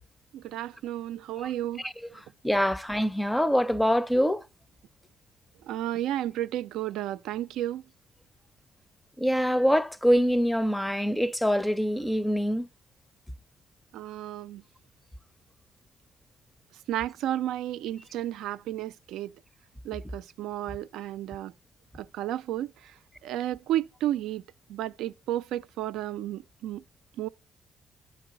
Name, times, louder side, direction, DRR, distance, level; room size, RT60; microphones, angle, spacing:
voice 1, 0.3-1.8 5.7-7.8 13.9-14.6 16.9-19.3 19.8-21.5 22.0-22.7 23.2-24.4 24.7-26.8 27.2-27.3, right 13 dB, 90° right, 0.3 m, -32 dB
voice 2, 2.4-4.4 9.2-12.7, equal, 5° left, 0.5 m, -24 dB
11.0 x 4.7 x 3.6 m
cardioid pair, 90°, 0 cm